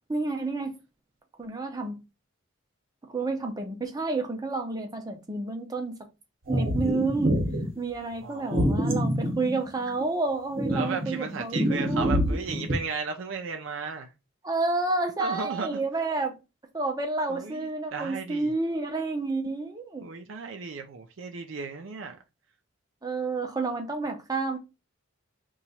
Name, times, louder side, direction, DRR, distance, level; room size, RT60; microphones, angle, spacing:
voice 1, 0.1-0.8 1.4-2.0 3.1-6.0 6.5-7.4 7.8-12.2 14.4-16.4 16.7-20.1 23.0-24.6, right 3 dB, 20° right, 0.6 m, -30 dB
sound 1, 6.5-7.7 8.5-10.1 10.6-12.7, equal, 50° right, 1.0 m, -26 dB
voice 2, 8.2-8.7 10.7-14.1 15.2-15.8 17.3-18.5 20.0-22.2, right 5 dB, 70° right, 0.5 m, -35 dB
2.9 x 2.3 x 4.1 m
head